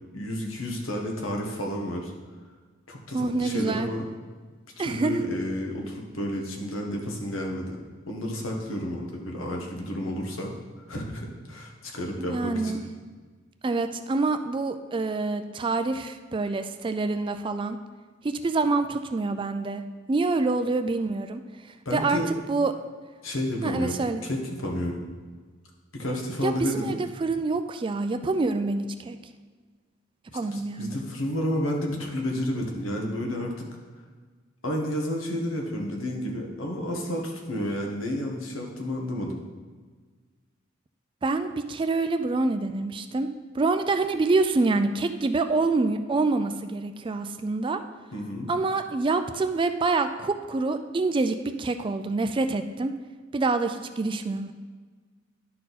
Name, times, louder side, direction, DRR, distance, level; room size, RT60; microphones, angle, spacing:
voice 1, 0.1-2.1 2.9-4.1 4.8-7.8 8.1-10.5 10.9-12.8 21.8-22.3 23.2-25.0 25.9-27.0 30.3-33.7 34.6-39.4 48.1-48.5, left 1 dB, 80° left, 0 dB, 1.4 m, -31 dB
voice 2, 3.1-3.9 4.8-5.2 12.2-12.8 13.6-17.8 18.2-19.8 20.1-22.2 22.5-22.7 23.6-24.2 26.4-29.2 30.3-31.0 41.2-43.3 43.5-47.8 48.5-52.9 53.3-54.5, right 3 dB, 25° right, 9 dB, 0.3 m, -26 dB
11.0 x 4.4 x 4.1 m, 1.5 s
head